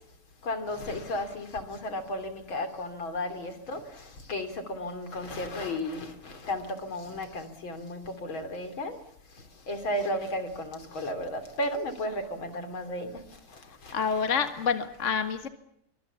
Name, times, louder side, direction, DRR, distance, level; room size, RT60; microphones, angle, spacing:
voice 1, 0.4-9.0 9.7-13.1 13.8-14.2, left 1 dB, 65° left, 3.9 m, -34 dB
voice 2, 13.9-15.5, left 6 dB, 35° left, 1.7 m, -27 dB
24.5 x 24.0 x 7.1 m
omnidirectional pair, 2.4 m